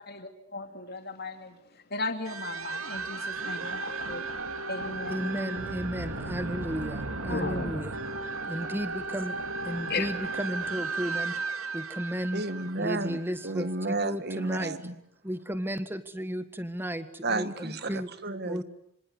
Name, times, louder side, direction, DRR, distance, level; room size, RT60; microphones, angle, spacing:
voice 1, 0.1-4.3 4.7-5.7 6.1-6.2 7.3-7.8 9.9-10.1, left 3 dB, 50° left, 2.8 m, -36 dB
sound 1, 2.2-13.5, right 3 dB, 90° right, 2.2 m, -35 dB
voice 2, 5.1-7.9 8.4-9.4 9.6-11.4 11.7-12.4 12.8-13.7 14.0-14.7 15.2-18.1 18.4-18.6, equal, 10° right, 1.5 m, -33 dB
voice 3, 12.3-15.0 17.2-18.6, right 2 dB, 50° right, 1.6 m, -32 dB
26.5 x 25.5 x 8.2 m
head